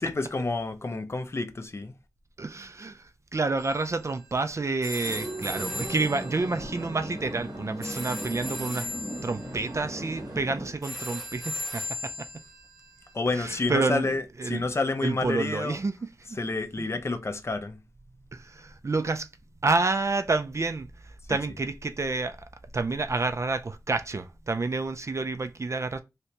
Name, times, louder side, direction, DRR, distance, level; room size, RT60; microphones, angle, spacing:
voice 1, 0.0-2.0 13.1-15.8 16.3-17.8 21.3-21.4, left 3 dB, 40° left, 0.5 m, -29 dB
voice 2, 2.4-8.9 9.2-12.3 13.3-14.0 14.4-14.6 15.0-15.9 18.3-19.3 19.6-20.9 21.3-22.4 22.7-26.0, right 3 dB, 45° right, 0.3 m, -29 dB
sound 1, 3.6-13.1, left 1 dB, ahead, 1.4 m, -39 dB
sound 2, 5.0-10.7, right 1 dB, 80° right, 1.5 m, -37 dB
3.1 x 2.8 x 2.8 m
wide cardioid pair, 70°, 7 cm